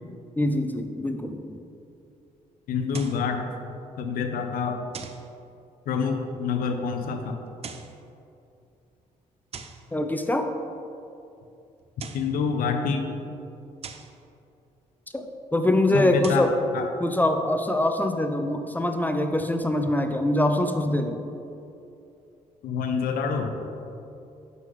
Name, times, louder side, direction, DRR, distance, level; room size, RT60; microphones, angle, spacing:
voice 1, 0.4-1.5 9.9-10.5 15.1-15.2 15.5-16.5 17.0-21.2, left 1 dB, 10° left, 6 dB, 0.5 m, -24 dB
voice 2, 2.7-3.5 4.0-4.8 5.9-7.4 12.1-13.1 15.9-16.5 16.7-16.9 22.6-23.6, left 5 dB, 75° left, 5 dB, 0.7 m, -27 dB
sound 1, 2.9-3.3 4.9-5.3 7.5-8.0 9.5-9.9 11.8-12.4 13.8-14.2 16.0-16.6, right 6 dB, 45° right, 0.5 m, -41 dB
6.3 x 5.2 x 3.7 m, 2.7 s
cardioid pair, 75°, 15 cm